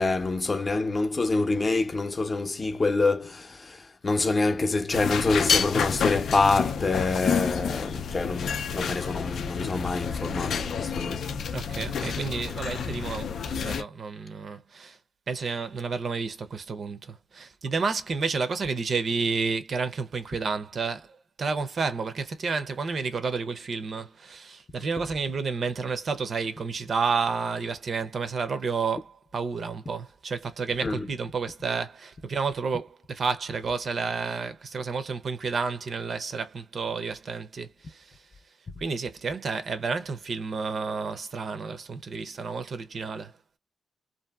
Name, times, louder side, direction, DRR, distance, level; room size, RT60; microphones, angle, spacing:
voice 1, 0.0-11.3 30.8-31.1, left 3 dB, 35° left, 0.6 m, -26 dB
sound 1, 4.9-13.8, left 6 dB, 75° left, 0.4 m, -29 dB
voice 2, 11.5-15.0 15.3-21.1 21.4-38.0 38.8-43.3, right 4 dB, 55° right, 0.5 m, -30 dB
2.6 x 2.5 x 2.3 m
cardioid pair, 85°, 0 cm